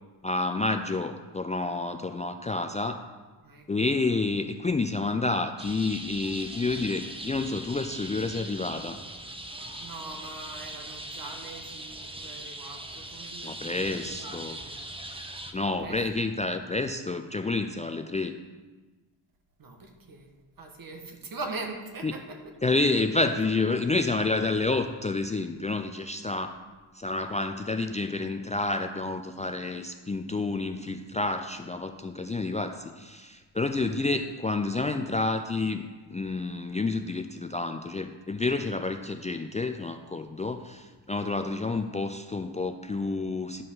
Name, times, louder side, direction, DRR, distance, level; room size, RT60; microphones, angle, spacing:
voice 1, 0.2-3.0 3.7-9.0 13.4-14.6 15.5-18.3 22.0-22.1 22.6-26.6 26.9-35.8 36.1-43.6, left 3 dB, 15° left, 6 dB, 0.4 m, -29 dB
sound 1, 5.6-15.5, right 1 dB, 15° right, 0.9 m, -40 dB
voice 2, 9.8-14.8 15.1-15.2 15.8-16.0 19.6-20.3 20.6-22.4 23.7-23.9 26.2-26.4, right 3 dB, 55° right, 3 dB, 1.6 m, -42 dB
11.0 x 5.3 x 5.6 m, 1.3 s
cardioid pair, 80°, 42 cm